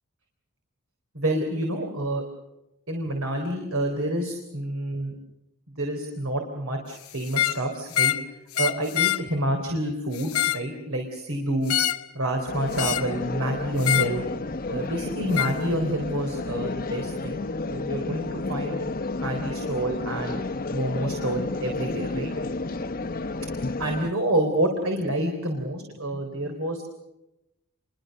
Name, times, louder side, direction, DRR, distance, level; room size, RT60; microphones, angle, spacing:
voice 1, 1.1-2.2 2.9-5.1 5.7-8.1 8.6-11.7 12.1-14.2 14.7-18.9 19.2-20.4 20.7-22.3 23.8-26.8, right 1 dB, 65° right, 3 dB, 3.8 m, -28 dB
sound 1, 7.2-7.6 7.9-8.2 8.5-9.2 10.1-10.7 11.7-12.1 12.8-13.1 13.8-14.1 15.3-15.5, left 11 dB, 75° left, 1.0 m, -25 dB
sound 2, 12.5-24.1, left 3 dB, 40° left, 1.0 m, -31 dB
29.0 x 23.5 x 6.6 m, 0.92 s
head